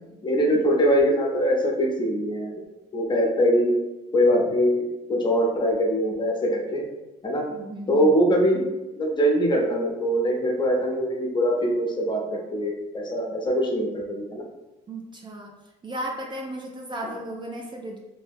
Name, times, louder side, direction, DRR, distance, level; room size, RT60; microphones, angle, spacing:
voice 1, 0.2-2.6 2.9-3.7 4.1-4.8 5.1-6.8 7.2-7.4 7.9-8.7 9.0-12.2 12.5-14.4, equal, 25° left, 0 dB, 0.7 m, -22 dB
voice 2, 7.5-8.1 14.9-15.5 15.8-18.0, right 1 dB, 30° right, 0 dB, 0.4 m, -35 dB
2.7 x 2.1 x 3.4 m, 1.0 s
cardioid pair, 110°, 17 cm